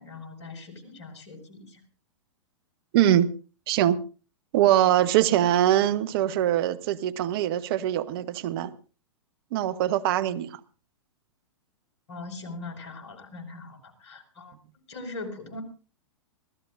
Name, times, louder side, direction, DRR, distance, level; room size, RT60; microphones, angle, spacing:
voice 1, 0.0-1.8 12.1-14.5 14.9-15.6, left 3 dB, 60° left, 5.2 m, -41 dB
voice 2, 2.9-3.3 3.7-4.0 4.5-8.7 9.5-10.6, right 12 dB, 50° right, 1.0 m, -23 dB
25.5 x 16.0 x 2.5 m
figure-of-eight pair, 110°, 16 cm